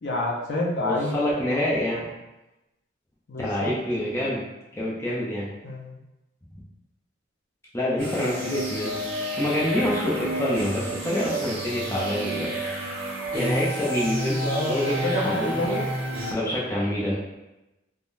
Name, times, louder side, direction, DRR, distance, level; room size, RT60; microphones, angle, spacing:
voice 1, 0.0-1.4 3.3-3.7 5.6-6.0 14.4-15.8, left 1 dB, 60° left, -3 dB, 0.5 m, -28 dB
voice 2, 0.8-2.1 3.3-4.4 4.7-5.5 7.7-12.5 13.3-15.6 16.3-17.2, left 1 dB, 15° left, -6 dB, 0.5 m, -27 dB
sound 1, 8.0-16.3, right 1 dB, 90° right, 1.1 m, -30 dB
3.6 x 2.1 x 2.5 m, 0.98 s
head